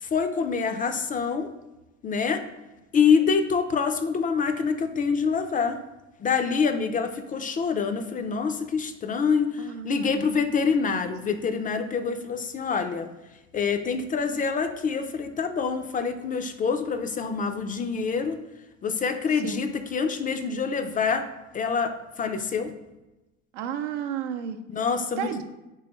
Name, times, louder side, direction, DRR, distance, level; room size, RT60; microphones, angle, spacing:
voice 1, 0.0-1.5 2.0-2.4 2.9-5.8 6.2-13.1 13.5-18.4 18.8-21.3 21.5-22.7 24.7-25.4, left 5 dB, 25° left, 8 dB, 0.3 m, -26 dB
voice 2, 9.6-10.3 19.4-19.6 23.5-24.6 25.2-25.4, right 9 dB, 85° right, 6 dB, 0.6 m, -32 dB
3.5 x 3.1 x 4.4 m, 1.0 s
supercardioid pair, 85°, 35 cm